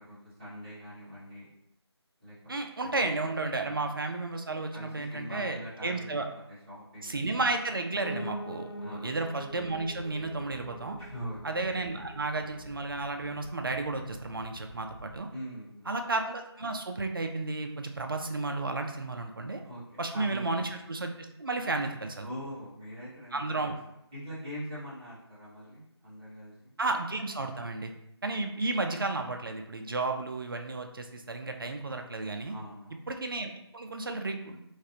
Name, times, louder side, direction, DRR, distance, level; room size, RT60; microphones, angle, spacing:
voice 1, 0.0-1.5 2.2-2.3 2.8-3.0 3.7-3.8 4.7-6.2 6.5-7.2 8.8-9.1 11.0-11.4 15.3-15.9 19.6-20.5 22.2-23.8 24.1-26.7 28.4-28.5 32.4-33.0, equal, 15° right, -13 dB, 0.9 m, -43 dB
voice 2, 2.5-6.3 7.0-11.0 11.4-15.3 15.9-19.6 20.0-21.1 21.4-22.3 23.3-23.7 26.8-27.9 28.2-32.5 33.1-34.6, right 3 dB, 50° right, 5 dB, 0.4 m, -33 dB
Piano, 8.0-17.1 17.5-18.7 19.0-19.1 19.3-19.4 19.6-19.7 20.3-20.4, equal, 65° left, 0.4 m, -47 dB
sound 1, 9.5-15.2, right 1 dB, 90° left, 0.9 m, -49 dB
3.1 x 2.5 x 2.7 m, 0.79 s
figure-of-eight pair, 165°, 14 cm